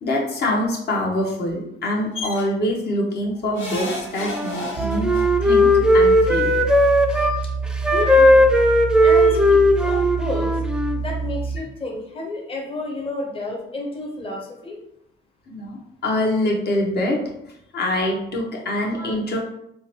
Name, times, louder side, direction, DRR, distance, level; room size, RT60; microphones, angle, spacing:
voice 1, 0.0-5.1 5.4-5.7 5.9-6.5 7.2-7.3 15.5-17.2 17.4-19.4, left 1 dB, 55° left, -1 dB, 0.9 m, -24 dB
sound 1, 2.1-2.4 3.6-5.2 6.4-6.5 6.8-6.9, left 1 dB, 85° left, 1.3 m, -31 dB
Wind instrument woodwind instrument, 4.2-7.4 7.8-11.0, left 1 dB, 5° right, 0.3 m, -17 dB
sound 2, 4.8-11.6, right 5 dB, 70° right, 0.5 m, -28 dB
voice 2, 7.9-8.5 9.0-10.5 10.9-14.8, left 2 dB, 30° left, -1 dB, 0.8 m, -31 dB
3.7 x 2.2 x 2.8 m, 0.77 s
cardioid pair, 90°, 20 cm